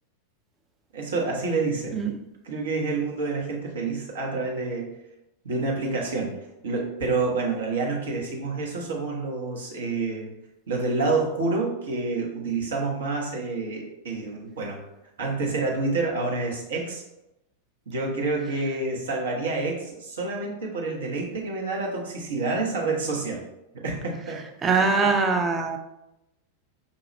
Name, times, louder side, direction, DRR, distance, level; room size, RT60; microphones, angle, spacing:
voice 1, 0.9-2.0 2.4-4.9 5.4-6.4 6.6-10.3 10.7-14.8 15.2-17.0 17.9-23.4 23.8-24.4 24.8-24.9, right 3 dB, 65° right, -1 dB, 0.9 m, -28 dB
voice 2, 24.6-25.8, right 4 dB, 20° right, 4 dB, 0.5 m, -22 dB
5.3 x 2.3 x 3.1 m, 0.90 s
figure-of-eight pair, 90°, 0 cm